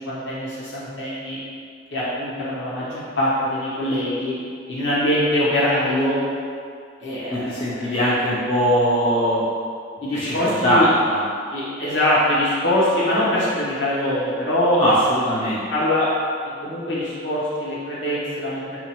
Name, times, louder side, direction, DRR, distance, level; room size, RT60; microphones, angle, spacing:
voice 1, 0.1-1.4 1.9-4.3 4.7-6.2 7.0-7.9 10.0-10.9 11.5-14.8 15.7-16.1 16.4-18.8, left 1 dB, 70° left, -8 dB, 1.1 m, -23 dB
voice 2, 7.3-9.4 10.1-11.2 14.8-15.6, equal, 30° left, -9 dB, 0.5 m, -20 dB
2.9 x 2.6 x 4.2 m, 2.3 s
head